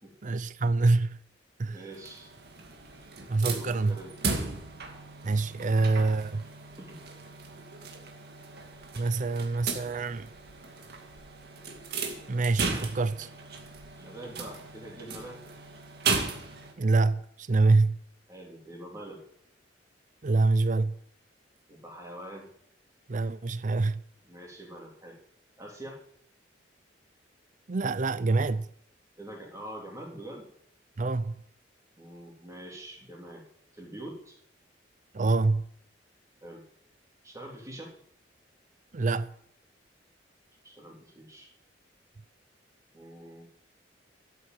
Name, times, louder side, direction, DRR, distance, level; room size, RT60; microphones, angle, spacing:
voice 1, 0.2-1.2 1.6-1.8 3.3-4.0 5.2-6.4 8.9-10.3 12.3-13.3 16.8-18.0 20.2-20.9 23.1-24.0 27.7-28.7 31.0-31.4 35.1-35.7 38.9-39.3, right 3 dB, 45° right, 0.5 m, -26 dB
voice 2, 1.7-2.3 2.9-3.1 3.4-4.1 6.8-7.0 14.0-15.4 18.3-19.2 21.7-22.5 24.2-25.2 25.6-26.0 29.2-30.5 32.0-33.4 33.7-34.4 36.4-36.6 37.2-37.9 40.6-41.5 42.9-43.5, right 1 dB, 15° right, 3.5 m, -44 dB
sound 1, 1.9-16.7, right 4 dB, 60° right, 2.2 m, -36 dB
13.0 x 8.1 x 7.5 m
head